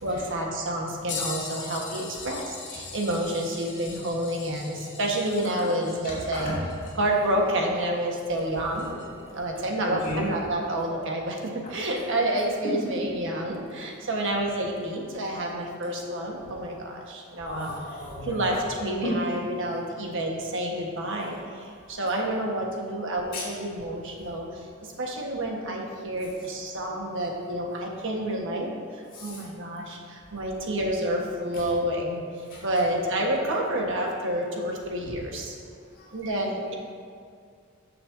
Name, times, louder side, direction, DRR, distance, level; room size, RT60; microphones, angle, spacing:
voice 1, 0.0-6.5 7.0-9.0 9.3-17.7 18.2-32.2 32.6-35.5 36.1-36.8, right 1 dB, 65° right, 0 dB, 1.3 m, -29 dB
sound 1, 1.1-9.3 10.0-10.1 12.4-12.5 13.5-13.7 14.8-14.9, left 5 dB, 60° left, 1.2 m, -41 dB
voice 2, 6.0-6.5 9.2-9.3 9.8-10.5 11.6-11.7 17.5-18.6 19.0-19.1 22.4-22.5 23.3-23.4 29.1-29.4 31.5-31.6 32.5-32.6 36.0-36.1, left 1 dB, 45° left, -9 dB, 2.4 m, -34 dB
14.0 x 6.6 x 2.7 m, 2.2 s
head